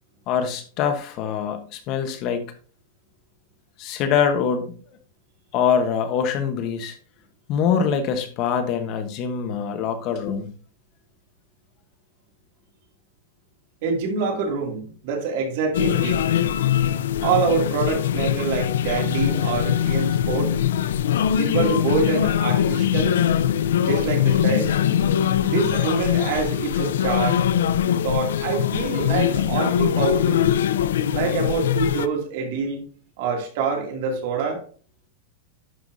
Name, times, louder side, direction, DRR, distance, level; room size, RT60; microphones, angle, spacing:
voice 1, 0.3-2.4 3.8-4.7 5.5-7.0 7.5-10.5, left 7 dB, 35° left, 8 dB, 1.0 m, -24 dB
voice 2, 13.8-16.2 17.2-20.5 21.4-23.2 23.9-24.7 25.4-27.4 28.0-30.5 31.1-32.8 33.2-34.6, right 5 dB, 55° right, 2 dB, 2.5 m, -25 dB
sound 1, 15.7-32.1, left 10 dB, 90° left, 0.5 m, -22 dB
11.0 x 5.7 x 2.7 m, 0.41 s
supercardioid pair, 160°, 0 cm